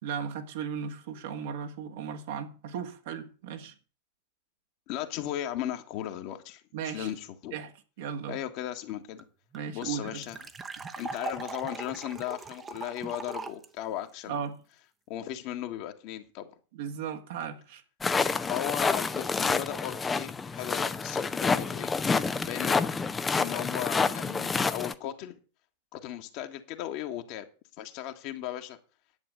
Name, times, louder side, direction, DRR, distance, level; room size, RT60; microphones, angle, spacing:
voice 1, 0.0-3.7 6.7-7.1 7.5-7.7 8.0-8.4 9.5-10.2 14.3-14.6 16.7-17.8, right 7 dB, 55° right, 1.9 m, -36 dB
voice 2, 4.9-7.6 8.3-9.2 9.7-10.4 11.0-14.4 15.1-16.5 18.4-21.9 22.4-22.8 23.3-25.4 25.9-27.5 27.8-28.8, left 12 dB, 45° left, 1.7 m, -36 dB
sound 1, 8.9-9.0 9.2-9.3 9.5-13.7, right 4 dB, 15° right, 1.2 m, -40 dB
sound 2, 18.0-24.9, left 4 dB, 15° left, 0.8 m, -28 dB
10.5 x 8.5 x 6.7 m
figure-of-eight pair, 90°, 0 cm